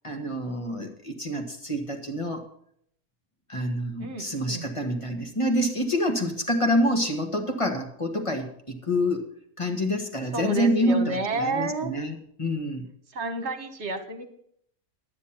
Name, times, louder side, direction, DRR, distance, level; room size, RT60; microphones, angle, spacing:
voice 1, 0.0-2.5 3.5-9.3 9.6-12.9, equal, 20° left, 4 dB, 1.6 m, -27 dB
voice 2, 4.0-4.7 10.3-11.9 13.1-14.2, right 3 dB, 50° right, 7 dB, 1.6 m, -30 dB
11.0 x 9.5 x 5.8 m, 0.69 s
omnidirectional pair, 1.5 m